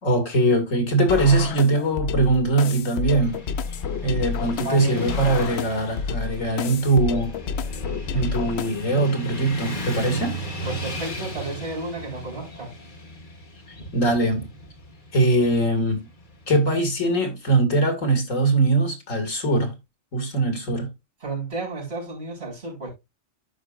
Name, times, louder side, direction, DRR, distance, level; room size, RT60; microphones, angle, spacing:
voice 1, 0.0-3.4 4.0-7.3 8.1-10.4 13.9-14.5 15.1-16.0 16.5-19.7 20.1-20.9, right 2 dB, 80° left, 2.3 m, -21 dB
sound 1, 1.1-9.1, left 6 dB, 65° left, 0.8 m, -30 dB
Motorcycle / Traffic noise roadway noise, 3.0-17.1, equal, 40° left, 1.9 m, -37 dB
voice 2, 4.6-5.3 10.6-12.7 21.2-22.9, right 3 dB, 50° right, 4.7 m, -32 dB
13.0 x 5.2 x 2.4 m
omnidirectional pair, 1.3 m